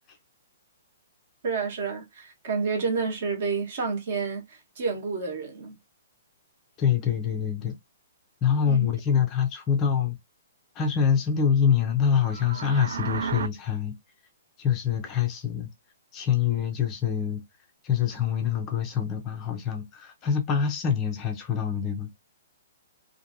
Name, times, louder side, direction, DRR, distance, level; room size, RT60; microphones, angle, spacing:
voice 1, 1.4-5.8 8.6-8.9, right 4 dB, 45° right, 1.1 m, -29 dB
voice 2, 6.8-7.8 8.4-10.2 10.8-13.9 14.6-15.7 16.1-17.4 17.8-22.1, left 7 dB, 15° left, 0.4 m, -25 dB
sound 1, 12.1-13.5, right 6 dB, 70° right, 0.3 m, -33 dB
2.8 x 2.5 x 2.5 m
hypercardioid pair, 170°, 0 cm